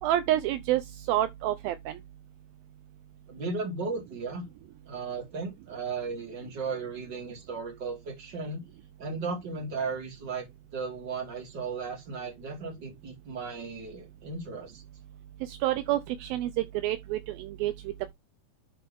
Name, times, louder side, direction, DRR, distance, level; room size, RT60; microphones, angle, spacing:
voice 1, 0.0-2.0 15.5-17.7, right 13 dB, 80° right, 2.4 m, -28 dB
voice 2, 3.3-4.5 4.9-8.6 9.0-10.5 10.7-14.8, right 4 dB, 30° right, 3.4 m, -35 dB
11.0 x 4.3 x 3.6 m
omnidirectional pair, 4.4 m